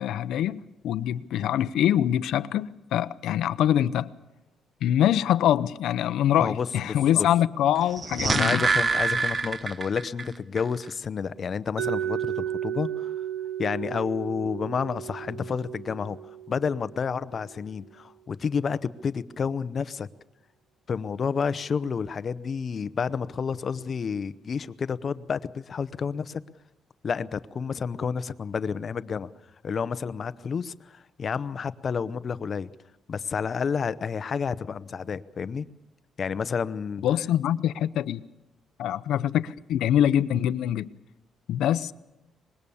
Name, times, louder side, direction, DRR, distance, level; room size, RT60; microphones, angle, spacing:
voice 1, 0.0-4.1 4.8-8.6 37.0-38.2 38.8-40.9 41.5-41.9, left 11 dB, 80° left, 0.8 m, -24 dB
voice 2, 6.4-7.3 8.2-13.1 13.6-16.2 16.5-20.1 20.9-26.4 27.0-29.3 29.6-32.7 33.1-35.7 36.2-37.0, left 6 dB, 35° left, 0.8 m, -30 dB
sound 1, 7.8-10.3 10.6-10.7, right 4 dB, 25° right, 0.8 m, -25 dB
Mallet percussion, 11.8-17.6, right 10 dB, 75° right, 1.4 m, -34 dB
25.0 x 21.0 x 7.1 m
cardioid pair, 145°, 0 cm